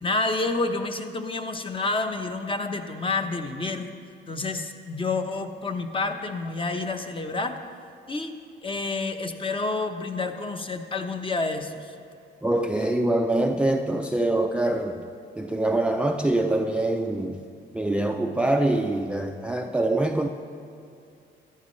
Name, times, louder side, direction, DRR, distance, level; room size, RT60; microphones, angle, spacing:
voice 1, 0.0-3.9 4.3-7.6 8.1-8.4 8.6-12.0, left 3 dB, 25° left, 6 dB, 0.9 m, -29 dB
voice 2, 12.4-15.1 15.4-17.4 17.7-20.3, right 1 dB, 5° right, 4 dB, 0.4 m, -24 dB
14.0 x 11.0 x 3.2 m, 2.4 s
cardioid pair, 90°, 20 cm